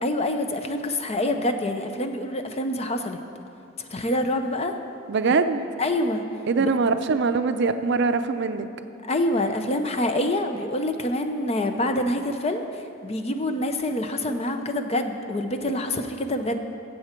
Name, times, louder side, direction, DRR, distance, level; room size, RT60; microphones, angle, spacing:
voice 1, 0.0-3.2 3.9-4.7 5.3-5.4 5.8-6.2 6.6-6.7 9.0-16.6, left 1 dB, 30° left, 6 dB, 0.6 m, -26 dB
voice 2, 5.1-5.6 6.5-8.7, right 4 dB, 60° right, 9 dB, 0.5 m, -22 dB
15.5 x 7.8 x 4.4 m, 2.7 s
head